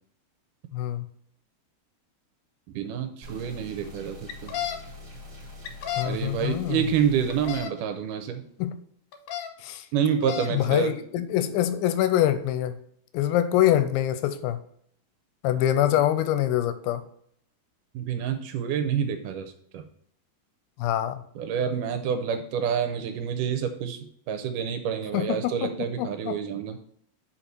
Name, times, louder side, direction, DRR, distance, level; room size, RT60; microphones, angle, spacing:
voice 1, 0.7-1.1 6.0-6.8 8.6-8.8 9.6-9.9 10.5-12.8 13.1-14.6 15.4-17.0 20.8-21.2 25.1-25.7 26.0-26.4, left 12 dB, 90° left, 11 dB, 2.3 m, -25 dB
voice 2, 2.7-4.5 6.1-8.5 9.9-10.9 17.9-19.8 21.4-24.0 24.3-26.8, right 8 dB, 80° right, 7 dB, 2.1 m, -28 dB
sound 1, 3.2-7.6, left 2 dB, 35° right, 1.2 m, -44 dB
sound 2, 4.3-4.8 5.6-6.1 7.3-7.7 9.1-9.5 10.1-10.5, left 11 dB, 70° left, 1.7 m, -31 dB
6.4 x 4.1 x 4.5 m, 0.67 s
omnidirectional pair, 4.0 m